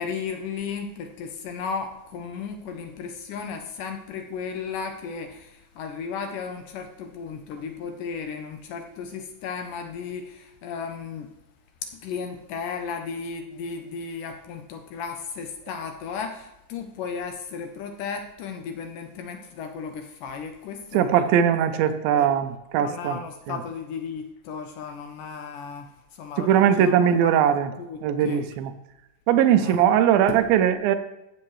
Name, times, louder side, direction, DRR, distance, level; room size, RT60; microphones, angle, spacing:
voice 1, 0.0-11.3 11.8-22.3 22.8-27.4 27.8-28.4 29.6-29.8 30.3-30.4, left 6 dB, 75° left, 6 dB, 2.0 m, -35 dB
voice 2, 20.9-23.2 23.5-23.6 26.4-27.7 28.0-28.7 29.3-31.0, right 9 dB, 80° right, 10 dB, 2.3 m, -20 dB
14.0 x 7.6 x 3.1 m, 0.96 s
omnidirectional pair, 4.3 m